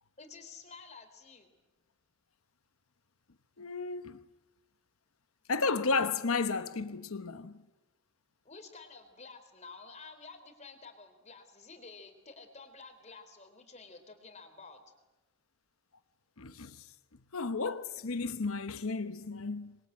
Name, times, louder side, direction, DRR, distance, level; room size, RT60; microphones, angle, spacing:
voice 1, 0.2-1.5 8.4-14.9, left 4 dB, 30° left, 3.7 m, -51 dB
voice 2, 3.6-4.2 5.5-7.6 16.4-16.8 17.3-19.8, left 4 dB, 80° left, 1.0 m, -33 dB
27.0 x 22.5 x 8.7 m
head